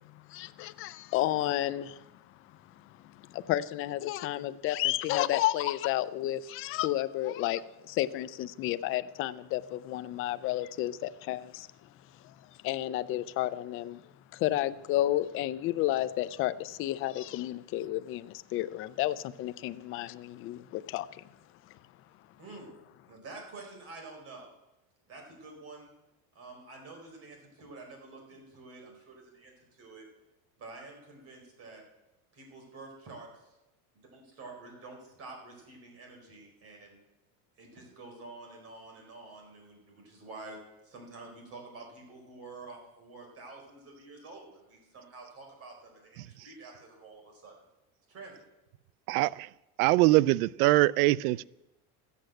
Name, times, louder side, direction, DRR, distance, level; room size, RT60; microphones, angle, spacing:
voice 1, 0.3-2.0 3.3-11.7 12.6-14.0 14.3-21.2, left 14 dB, 30° left, 0.4 m, -31 dB
voice 2, 23.1-24.5 25.1-25.9 26.3-30.0 30.6-31.8 32.3-33.6 33.9-37.0 37.6-47.5 48.1-48.3, right 3 dB, 30° right, 4.7 m, -48 dB
voice 3, 49.1-49.5 49.8-51.4, right 18 dB, 75° right, 0.5 m, -23 dB
14.0 x 8.4 x 7.7 m
supercardioid pair, 150°, 44 cm